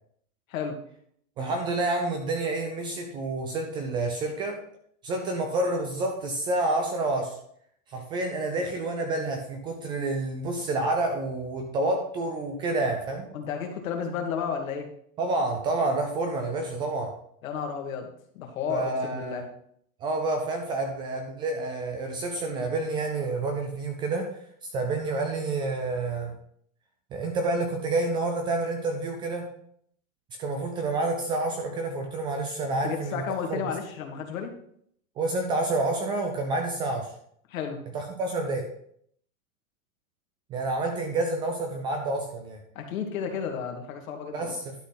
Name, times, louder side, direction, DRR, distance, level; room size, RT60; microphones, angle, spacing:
voice 1, 1.4-4.6 5.0-7.4 7.9-13.3 15.2-17.1 18.7-19.4 20.0-24.3 24.7-26.3 27.1-29.5 30.4-33.6 35.2-37.1 37.9-38.7 40.5-42.6 44.3-44.7, right 2 dB, 15° right, 4 dB, 0.3 m, -29 dB
voice 2, 13.3-14.9 17.4-18.1 18.3-19.4 32.8-34.5 37.5-37.8 42.8-44.5, left 7 dB, 75° left, 3 dB, 2.1 m, -32 dB
11.5 x 4.2 x 5.7 m, 0.67 s
supercardioid pair, 155°, 40 cm